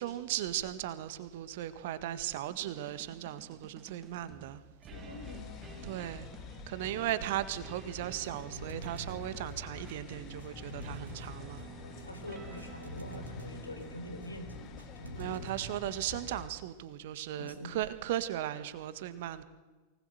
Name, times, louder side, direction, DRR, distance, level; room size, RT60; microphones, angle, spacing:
voice 1, 0.0-4.6 5.8-6.3 6.7-11.7 15.2-19.4, right 13 dB, 55° right, 13 dB, 1.7 m, -37 dB
sound 1, 2.5-16.0, right 8 dB, 30° right, 1.4 m, -52 dB
voice 2, 4.9-6.0 11.8-15.5 17.1-17.9, left 1 dB, 85° left, 8 dB, 3.9 m, -46 dB
sound 2, 4.9-16.5, left 7 dB, 35° left, 2.2 m, -48 dB
sound 3, 7.8-15.9, equal, 80° right, 3.0 m, -48 dB
24.0 x 19.5 x 7.9 m, 1.2 s
figure-of-eight pair, 90°, 0 cm